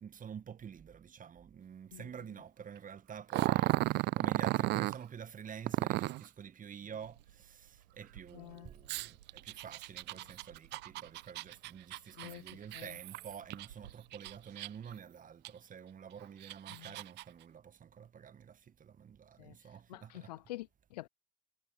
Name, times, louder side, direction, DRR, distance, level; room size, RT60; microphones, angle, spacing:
voice 1, 0.0-20.3, right 7 dB, 40° right, 1.9 m, -49 dB
Growling, 3.3-5.0 5.7-6.3 8.9-13.7 14.1-14.9 15.4-15.5 16.2-17.2, right 19 dB, 55° right, 0.7 m, -34 dB
Water, 7.0-15.0, right 11 dB, 80° right, 4.7 m, -61 dB
voice 2, 8.3-8.7 12.2-12.5 12.7-12.9 16.7-17.0 19.4-19.6 19.9-21.1, left 18 dB, 75° left, 0.5 m, -47 dB
figure-of-eight pair, 45°, 21 cm